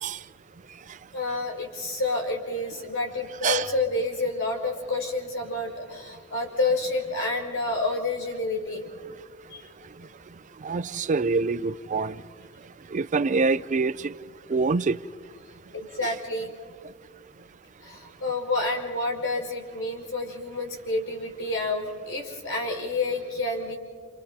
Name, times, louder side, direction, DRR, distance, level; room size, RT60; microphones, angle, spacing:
voice 1, 1.1-8.8 9.5-9.6 15.7-16.5 17.8-23.8, left 2 dB, 70° left, 5.9 m, -29 dB
voice 2, 10.6-12.2 12.9-14.1 14.5-15.0 16.0-16.1, right 4 dB, 35° right, 0.4 m, -25 dB
30.0 x 30.0 x 2.9 m
head